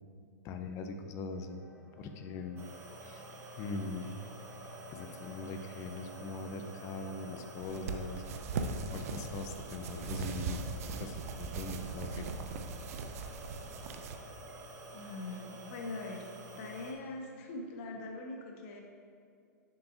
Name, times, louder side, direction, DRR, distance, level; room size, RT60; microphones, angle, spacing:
voice 1, 0.4-1.6 2.0-2.6 3.0-3.2 3.6-4.2 4.9-8.2 8.7-10.6 11.0-12.3, left 3 dB, 35° left, 7 dB, 0.6 m, -41 dB
sound 1, 1.3-17.6, right 1 dB, ahead, 1.2 m, -58 dB
sound 2, 2.6-16.9, right 1 dB, 25° right, 1.1 m, -49 dB
sound 3, 7.6-14.2, right 4 dB, 55° right, 0.6 m, -39 dB
voice 2, 14.9-16.3 16.6-18.8, left 2 dB, 50° left, 1 dB, 1.4 m, -42 dB
9.5 x 7.7 x 2.6 m, 2.4 s
hypercardioid pair, 110°, 9 cm